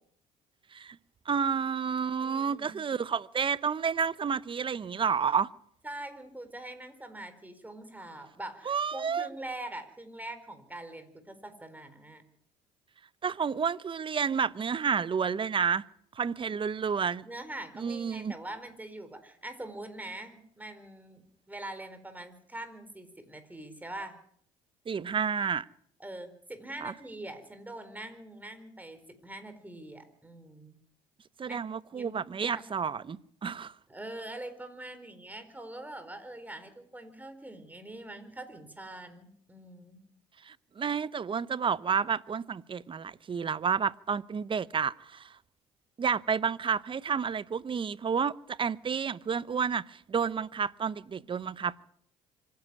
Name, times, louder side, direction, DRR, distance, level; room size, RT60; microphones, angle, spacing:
voice 1, 1.3-5.5 8.7-9.3 13.2-15.8 16.2-17.2 17.8-18.3 24.9-25.6 26.8-26.9 31.4-33.7 40.4-45.3 46.0-51.8, right 6 dB, 35° right, 0.9 m, -30 dB
voice 2, 2.2-3.0 5.8-12.2 17.2-24.2 26.0-30.8 31.4-31.6 31.9-32.6 33.9-40.0, right 1 dB, 10° right, 4.4 m, -43 dB
25.5 x 10.5 x 9.7 m
supercardioid pair, 70°, 16 cm